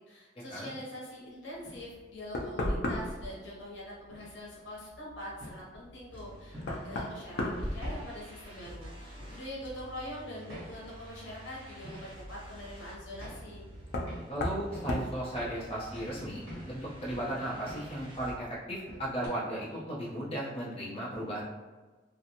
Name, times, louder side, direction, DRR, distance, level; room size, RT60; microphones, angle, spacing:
voice 1, 0.1-13.7, left 1 dB, 85° left, -5 dB, 0.8 m, -44 dB
sound 1, 1.5-19.3, equal, 60° right, 1.2 m, -50 dB
Knock, 2.3-3.3 5.7-5.8 6.6-8.4 8.8-9.3 11.1-11.2 13.9-14.2 14.4-14.6 14.9-15.1, left 1 dB, 60° left, 0.4 m, -33 dB
sound 2, 6.1-18.4, equal, 30° right, 0.5 m, -51 dB
voice 2, 14.3-21.4, right 1 dB, 30° left, -7 dB, 0.8 m, -36 dB
2.5 x 2.2 x 2.9 m, 1.3 s
head